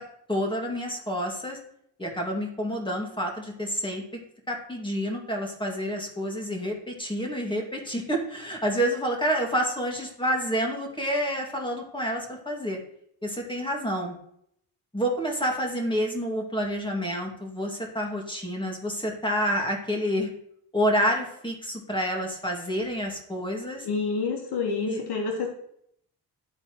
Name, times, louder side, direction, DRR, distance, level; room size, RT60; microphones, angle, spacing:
voice 1, 0.3-1.6 2.0-4.0 4.5-12.8 13.2-14.2 14.9-20.3 20.7-23.9 24.9-25.0, equal, 10° left, 1 dB, 2.1 m, -28 dB
voice 2, 23.8-25.5, left 4 dB, 70° left, 1 dB, 1.4 m, -28 dB
12.0 x 4.1 x 3.0 m, 0.71 s
cardioid pair, 60°, 41 cm